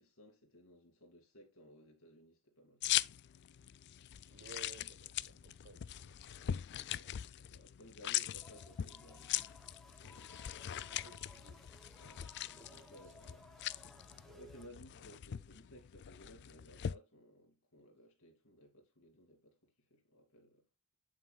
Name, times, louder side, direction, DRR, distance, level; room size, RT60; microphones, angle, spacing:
voice 1, 0.0-3.0 6.4-6.6 6.9-9.4 10.0-10.3 12.0-13.4 14.3-20.6, equal, 85° left, 2.6 m, -59 dB
sound 1, 2.8-16.9, left 11 dB, 55° left, 0.4 m, -41 dB
voice 2, 4.3-6.7 10.7-11.8 12.4-13.3 13.6-14.7, right 3 dB, 60° right, 1.1 m, -59 dB
sound 2, 8.3-14.7, left 1 dB, ahead, 1.1 m, -60 dB
8.6 x 7.6 x 2.3 m
head